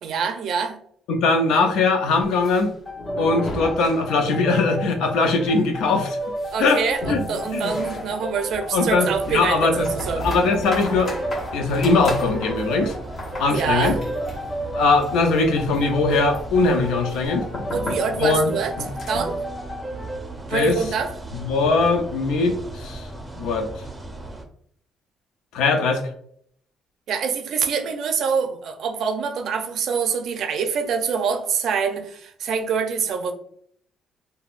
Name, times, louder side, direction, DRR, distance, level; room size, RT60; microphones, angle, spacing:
voice 1, 0.0-0.8 6.5-10.3 13.5-14.0 17.7-18.7 19.1-19.4 20.5-21.1 27.1-33.3, right 6 dB, 65° right, 0.4 m, -25 dB
voice 2, 1.1-2.7 3.2-6.2 6.6-6.8 7.1-7.2 7.5-7.7 8.7-9.9 10.2-11.1 11.5-12.9 13.4-14.0 14.7-17.5 18.2-18.5 18.8-18.9 20.5-20.8 21.4-23.1 23.4-23.7 25.5-26.0, left 3 dB, 85° left, 0.5 m, -20 dB
sound 1, 2.2-4.6 4.8-4.9 5.2-5.3 5.8-19.4, left 1 dB, 45° left, 1.0 m, -36 dB
sound 2, 2.9-20.3, right 1 dB, 15° left, 1.1 m, -32 dB
sound 3, 9.1-24.4, right 2 dB, 15° right, 0.5 m, -37 dB
3.4 x 2.2 x 2.4 m
cardioid pair, 100°, 0 cm